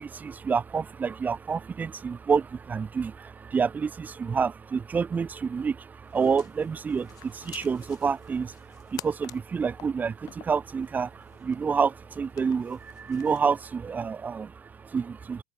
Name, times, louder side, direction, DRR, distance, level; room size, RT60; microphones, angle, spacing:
voice 1, 0.0-15.4, right 5 dB, 20° right, 0.9 m, -28 dB
sound 1, 6.0-13.6, left 15 dB, 45° left, 4.2 m, -49 dB
open air
hypercardioid pair, 95°, 8 cm